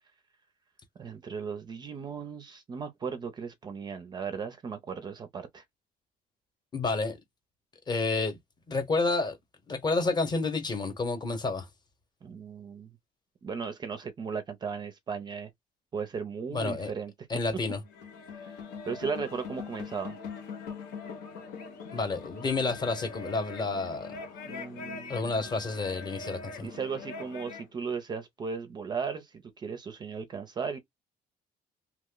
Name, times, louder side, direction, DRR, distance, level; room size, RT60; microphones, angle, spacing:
voice 1, 1.0-5.6 12.2-13.0 13.4-15.5 15.9-17.1 18.4-18.6 18.8-20.2 24.4-25.5 26.6-30.8, right 5 dB, 25° right, 0.4 m, -36 dB
voice 2, 6.7-7.2 7.9-8.4 8.7-9.4 9.7-11.7 16.5-16.9 17.3-17.8 21.9-24.2 25.1-26.7, left 3 dB, 25° left, 0.8 m, -29 dB
sound 1, 17.8-27.7, left 5 dB, 90° left, 1.2 m, -42 dB
2.9 x 2.0 x 3.7 m
cardioid pair, 165°, 16 cm